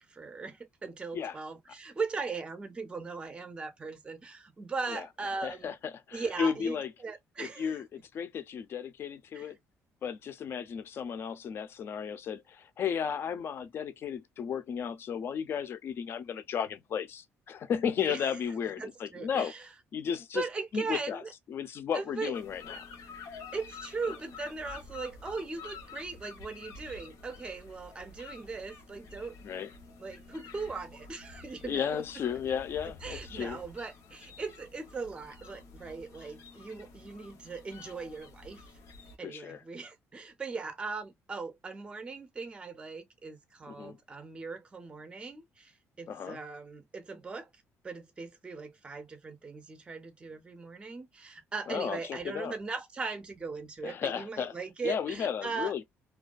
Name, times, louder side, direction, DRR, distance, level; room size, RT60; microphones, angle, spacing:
voice 1, 0.0-5.7 6.1-6.8 7.0-7.8 9.3-9.5 18.0-18.3 18.8-19.6 20.3-21.3 21.9-22.4 23.5-29.3 30.0-32.0 33.0-38.6 39.2-47.5 47.8-55.7, right 4 dB, 20° right, 0.5 m, -39 dB
voice 2, 5.4-6.9 7.4-9.6 10.0-19.5 19.9-20.4 20.7-21.2 21.5-22.8 29.4-29.7 31.6-33.6 39.2-39.6 43.7-44.0 46.1-46.4 51.7-52.5 53.8-54.5 54.8-55.8, left 7 dB, 50° left, 0.4 m, -34 dB
sound 1, 22.3-39.2, left 4 dB, 90° left, 0.9 m, -49 dB
2.3 x 2.2 x 2.3 m
cardioid pair, 135°, 5 cm